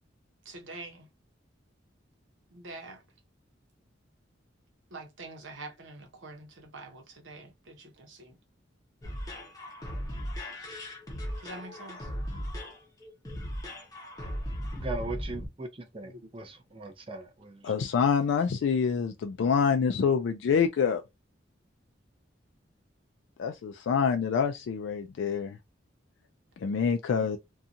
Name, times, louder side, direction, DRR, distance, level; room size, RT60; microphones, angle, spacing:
voice 1, 0.5-1.0 2.5-3.0 4.9-8.3 11.4-12.0 16.0-16.2, right 2 dB, 80° right, 0.9 m, -45 dB
sound 1, 9.0-15.5, equal, 20° left, 0.7 m, -37 dB
voice 2, 14.7-15.7 15.9-17.5, right 2 dB, 30° right, 0.5 m, -38 dB
voice 3, 17.6-21.0 23.4-25.6 26.6-27.4, left 6 dB, 75° left, 0.3 m, -26 dB
2.7 x 2.3 x 2.4 m
head